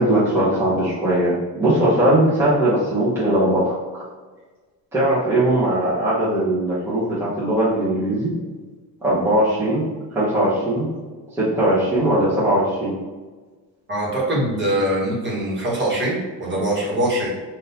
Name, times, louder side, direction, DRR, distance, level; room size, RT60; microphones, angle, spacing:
voice 1, 0.0-4.0 4.9-8.3 9.0-9.8 10.1-10.9 11.4-12.9, right 1 dB, 5° right, -10 dB, 0.9 m, -19 dB
voice 2, 13.9-17.3, right 1 dB, 30° right, -5 dB, 1.4 m, -23 dB
3.8 x 2.6 x 4.1 m, 1.3 s
cardioid pair, 150°, 38 cm